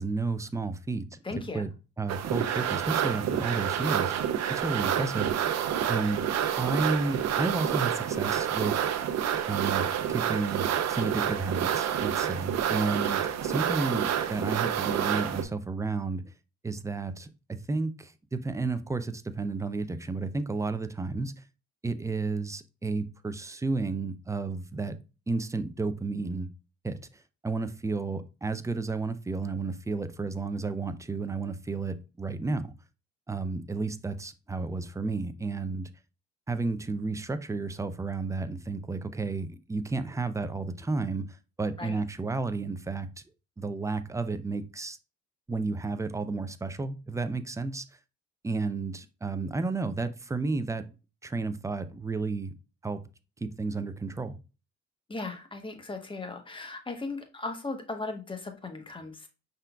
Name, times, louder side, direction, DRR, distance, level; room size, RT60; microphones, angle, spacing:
voice 1, 0.0-1.2 1.5-1.7 2.0-4.2 4.5-5.3 5.9-6.3 6.6-8.8 9.5-16.3 16.6-21.4 21.8-25.0 25.3-26.5 26.8-32.7 33.3-35.9 36.5-43.1 43.6-45.0 45.5-47.8 48.4-50.9 51.2-52.5 52.8-53.0 53.4-54.4, right 3 dB, 10° right, 0.4 m, -32 dB
voice 2, 1.2-1.6 41.8-42.0 55.1-59.3, left 3 dB, 15° left, 1.0 m, -37 dB
sound 1, 2.1-15.4, right 9 dB, 60° right, 0.6 m, -28 dB
5.4 x 3.8 x 2.2 m
cardioid pair, 90°, 30 cm